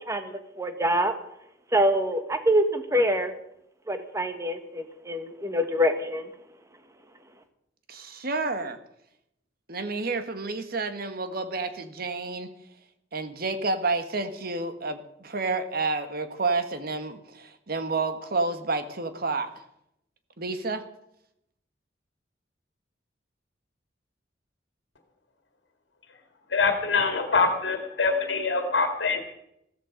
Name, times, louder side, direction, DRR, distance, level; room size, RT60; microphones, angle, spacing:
voice 1, 0.1-1.1 1.7-3.3 3.9-6.3, equal, 15° right, 8 dB, 1.4 m, -25 dB
voice 2, 7.9-8.8 9.7-12.5 13.1-19.5 20.4-20.8, right 3 dB, 55° right, 9 dB, 1.6 m, -30 dB
voice 3, 26.5-29.2, left 4 dB, 75° left, 5 dB, 2.0 m, -24 dB
15.0 x 14.0 x 5.2 m, 0.77 s
head